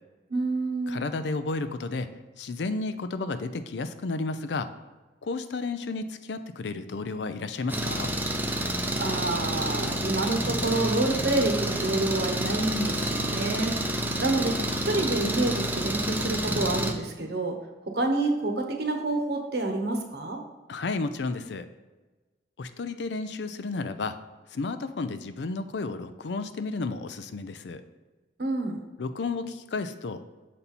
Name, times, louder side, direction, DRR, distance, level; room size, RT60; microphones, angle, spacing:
voice 1, 0.3-1.0 8.6-17.6 17.9-20.4 28.4-28.8, right 2 dB, 65° right, 4 dB, 1.0 m, -28 dB
voice 2, 0.9-2.1 2.4-4.7 5.2-8.1 20.7-21.7 22.6-24.2 24.5-27.8 29.0-30.2, left 3 dB, 75° left, 10 dB, 0.5 m, -32 dB
Engine, 7.7-16.9, right 1 dB, 10° right, 0.6 m, -29 dB
6.9 x 4.2 x 4.2 m, 1.2 s
head